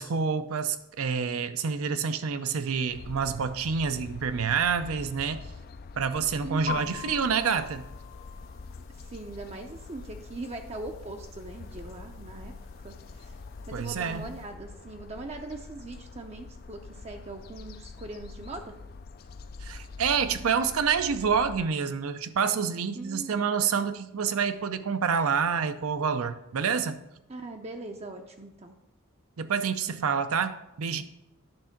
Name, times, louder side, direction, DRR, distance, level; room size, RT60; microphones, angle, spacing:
voice 1, 0.0-5.4 6.0-7.9 13.7-14.3 19.6-27.0 29.4-31.0, right 6 dB, 80° right, 10 dB, 0.5 m, -28 dB
sound 1, 2.9-21.7, left 4 dB, 45° left, 0.3 m, -45 dB
voice 2, 6.4-7.0 9.0-12.5 12.8-13.4 13.7-18.7 23.0-23.4 27.3-28.7, right 2 dB, 30° right, 3 dB, 0.5 m, -41 dB
sound 2, 6.7-14.5, left 8 dB, 65° left, 1.2 m, -45 dB
10.5 x 3.6 x 5.8 m, 0.87 s
head